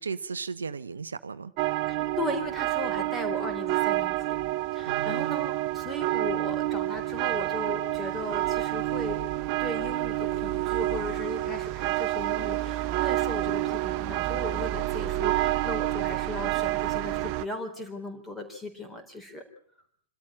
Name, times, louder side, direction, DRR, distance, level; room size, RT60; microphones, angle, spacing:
voice 1, 0.0-1.5 4.8-5.3, right 5 dB, 75° right, 13 dB, 0.9 m, -35 dB
sound 1, 1.6-17.4, right 15 dB, 35° right, 0.9 m, -28 dB
voice 2, 1.9-4.4 4.7-9.2 9.6-19.4, left 1 dB, 10° left, 6 dB, 4.1 m, -37 dB
27.0 x 13.0 x 8.8 m, 0.64 s
figure-of-eight pair, 110°, 0 cm